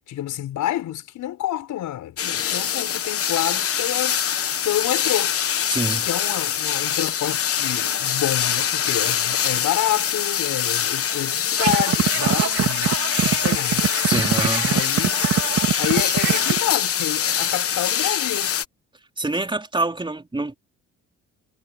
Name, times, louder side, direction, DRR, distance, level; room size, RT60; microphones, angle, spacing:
voice 1, 0.1-4.2 4.6-5.4 6.0-12.9 13.2-13.9 14.6-15.3 15.8-18.5, left 12 dB, 80° left, 6.1 m, -28 dB
sound 1, 2.2-18.6, left 9 dB, 50° left, 1.1 m, -24 dB
voice 2, 5.7-6.1 14.0-14.7 19.2-20.5, right 2 dB, 15° right, 4.1 m, -26 dB
sound 2, 11.6-16.6, right 9 dB, 60° right, 3.6 m, -23 dB
cardioid pair, 90°, 30 cm